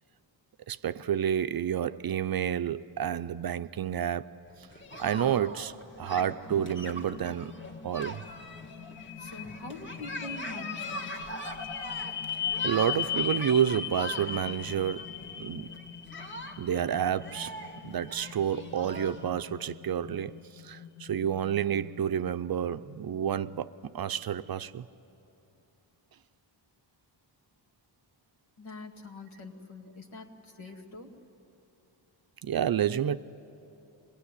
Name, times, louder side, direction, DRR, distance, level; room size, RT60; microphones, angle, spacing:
voice 1, 0.7-4.3 5.0-7.5 7.8-8.2 12.6-15.7 16.6-17.5 17.8-20.4 20.6-24.9 32.4-33.2, right 9 dB, 50° right, 0.5 m, -29 dB
sound 1, 4.5-19.3, equal, 25° left, 1.8 m, -42 dB
sound 2, 5.6-23.6, left 8 dB, 60° left, 1.3 m, -40 dB
voice 2, 9.2-11.1 28.6-31.1, left 2 dB, 80° left, 2.3 m, -44 dB
25.5 x 19.5 x 9.9 m
wide cardioid pair, 100°, 47 cm